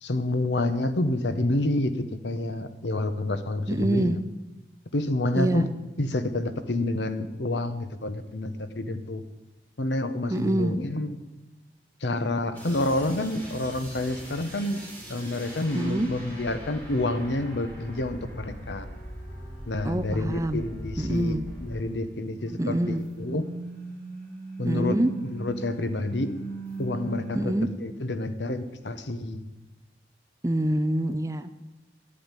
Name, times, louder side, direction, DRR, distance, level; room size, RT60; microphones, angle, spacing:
voice 1, 0.0-4.1 4.9-5.7 6.0-9.2 9.8-11.2 12.0-14.8 15.1-18.9 19.7-23.4 24.6-25.0 25.3-26.3 26.8-29.4, left 2 dB, 85° left, 10 dB, 1.0 m, -28 dB
voice 2, 3.7-4.2 5.4-5.7 10.3-10.8 15.7-16.1 19.8-20.6 21.0-21.4 22.6-23.0 24.7-25.1 27.4-27.7 30.4-31.5, right 1 dB, 20° right, 11 dB, 0.5 m, -25 dB
sound 1, 12.5-22.1 22.4-27.4, right 1 dB, 10° left, 3.6 m, -40 dB
10.0 x 8.6 x 9.1 m, 1.1 s
head